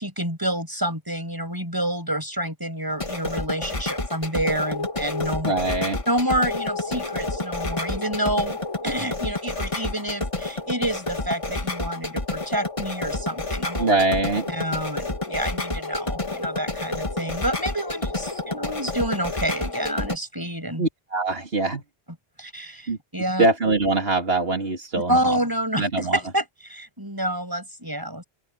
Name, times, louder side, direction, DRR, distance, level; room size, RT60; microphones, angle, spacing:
voice 1, 0.0-5.5 6.1-13.9 14.5-20.8 22.4-23.4 25.1-28.2, right 1 dB, 20° right, 6.7 m, -28 dB
sound 1, 2.9-20.2, left 2 dB, 30° left, 1.7 m, -29 dB
voice 2, 5.4-6.0 13.8-14.5 20.8-21.8 22.9-23.0 23.4-25.4 25.8-26.2, right 3 dB, 70° right, 2.8 m, -23 dB
open air
omnidirectional pair, 1.1 m